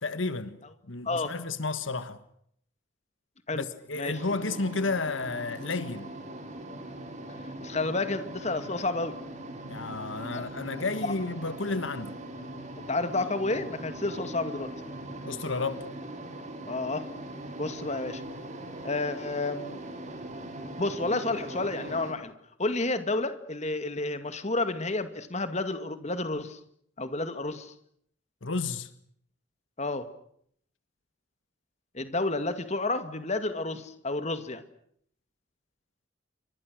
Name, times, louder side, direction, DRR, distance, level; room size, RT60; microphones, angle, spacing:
voice 1, 0.0-0.6 0.9-2.2 3.5-6.1 9.7-12.2 15.2-15.8 28.4-28.9, left 3 dB, 80° left, 1.5 m, -32 dB
sound 1, 4.1-22.1, right 1 dB, 40° right, 4.3 m, -41 dB
voice 2, 7.6-9.2 10.3-10.5 10.8-10.9 12.8-14.7 16.6-17.1 17.6-18.2 18.8-19.8 20.8-22.3 22.6-26.6 27.0-27.7 29.8-30.1 31.9-34.6, left 2 dB, 35° left, 2.1 m, -30 dB
29.0 x 24.5 x 6.4 m
head